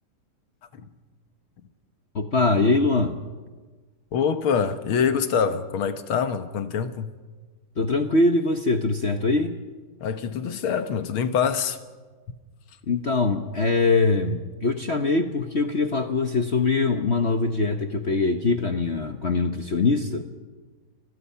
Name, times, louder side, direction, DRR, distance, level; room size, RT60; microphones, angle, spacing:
voice 1, 2.1-3.2 7.8-9.5 12.9-20.2, left 3 dB, 45° left, 0.9 m, -23 dB
voice 2, 4.1-7.1 10.0-11.8, left 7 dB, 75° left, 2.1 m, -25 dB
29.5 x 21.5 x 5.7 m
omnidirectional pair, 2.4 m